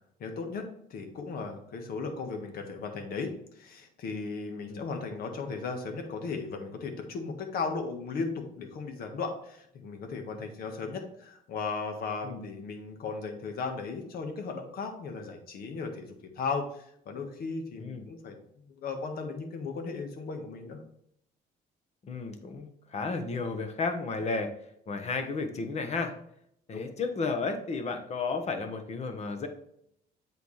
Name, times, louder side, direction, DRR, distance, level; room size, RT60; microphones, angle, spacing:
voice 1, 0.2-0.6 0.9-18.4 18.8-20.8 26.7-26.8, left 4 dB, 60° left, 5 dB, 1.5 m, -36 dB
voice 2, 22.0-24.5 24.9-26.1 26.7-29.5, left 4 dB, 40° left, 6 dB, 1.2 m, -33 dB
7.9 x 4.6 x 3.3 m, 0.72 s
cardioid pair, 110°, 17 cm